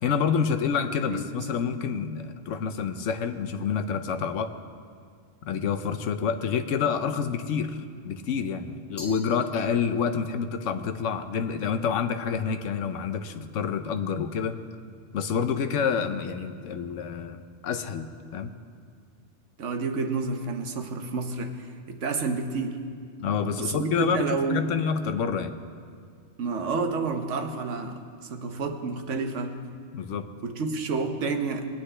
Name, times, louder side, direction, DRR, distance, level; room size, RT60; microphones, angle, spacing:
voice 1, 0.0-4.5 5.5-7.8 8.0-14.6 15.1-18.5 23.2-25.6 29.9-30.3, left 6 dB, 90° left, 9 dB, 1.1 m, -28 dB
voice 2, 1.0-1.4 19.6-22.8 23.6-24.7 26.4-28.0 28.3-29.6 30.4-31.7, right 4 dB, 85° right, 5 dB, 1.3 m, -29 dB
Glass, 9.0-10.2, left 2 dB, 40° left, 1.9 m, -45 dB
20.5 x 9.7 x 3.3 m, 2.1 s
omnidirectional pair, 1.2 m